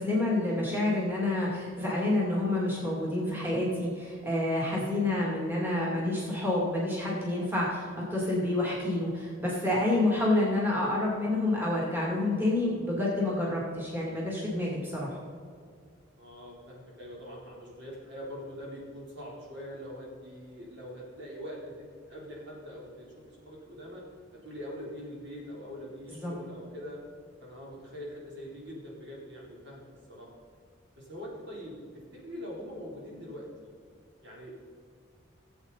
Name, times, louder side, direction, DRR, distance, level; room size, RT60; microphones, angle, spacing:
voice 1, 0.0-15.1 26.1-26.3, left 2 dB, 10° right, -5 dB, 2.4 m, -28 dB
voice 2, 16.2-24.0 24.3-27.0 27.4-30.3 31.0-33.7 34.2-34.6, equal, 60° right, -4 dB, 3.5 m, -43 dB
16.0 x 8.1 x 4.1 m, 2.1 s
head